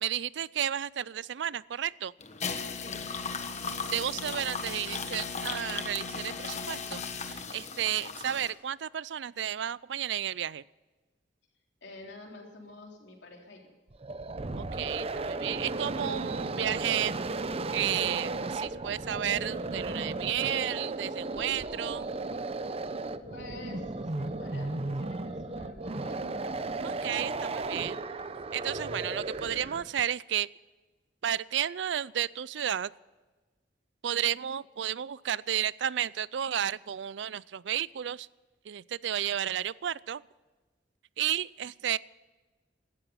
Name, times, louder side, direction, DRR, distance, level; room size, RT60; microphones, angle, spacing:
voice 1, 0.0-2.1 3.9-10.6 14.6-17.1 17.7-22.1 26.8-28.0 28.5-30.5 31.2-32.9 34.0-38.3 38.7-40.2 41.2-42.0, right 10 dB, 75° right, 21 dB, 0.4 m, -32 dB
sound 1, 2.2-8.5, left 5 dB, 40° left, 1.3 m, -36 dB
voice 2, 11.8-13.7 23.3-26.2, left 2 dB, 70° left, 0 dB, 3.6 m, -48 dB
sound 2, 13.9-30.0, right 2 dB, 35° right, 0.7 m, -35 dB
17.0 x 13.0 x 5.6 m, 1.2 s
head